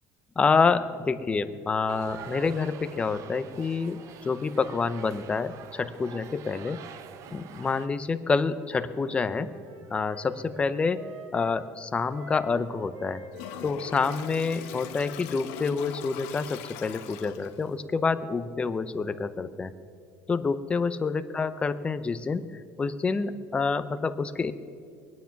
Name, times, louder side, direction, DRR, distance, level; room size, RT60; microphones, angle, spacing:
voice 1, 0.4-6.8 7.3-9.5 9.9-13.2 13.6-19.7 20.3-24.5, left 4 dB, 15° left, 12 dB, 0.5 m, -28 dB
sound 1, 1.9-7.9, right 8 dB, 45° right, 0.6 m, -45 dB
Wind instrument woodwind instrument, 8.4-11.6 12.1-15.4, right 2 dB, 85° right, 2.4 m, -48 dB
Toilet flush, 13.3-17.7, left 10 dB, 90° left, 1.1 m, -41 dB
22.5 x 9.4 x 5.8 m, 2.3 s
cardioid pair, 160°, 8 cm